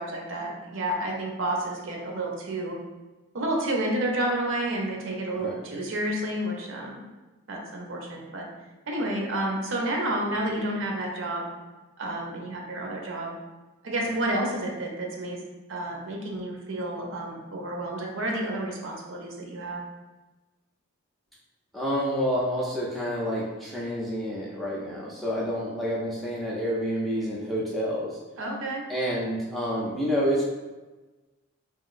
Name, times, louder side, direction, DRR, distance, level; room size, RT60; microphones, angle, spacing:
voice 1, 0.0-2.8 3.3-7.0 7.5-8.5 8.9-11.5 12.0-13.3 13.8-15.4 15.7-19.8 28.4-28.8, right 1 dB, 60° right, 0 dB, 0.5 m, -30 dB
voice 2, 21.7-28.2 28.9-30.4, equal, ahead, -6 dB, 0.3 m, -28 dB
2.9 x 2.6 x 2.4 m, 1.2 s
head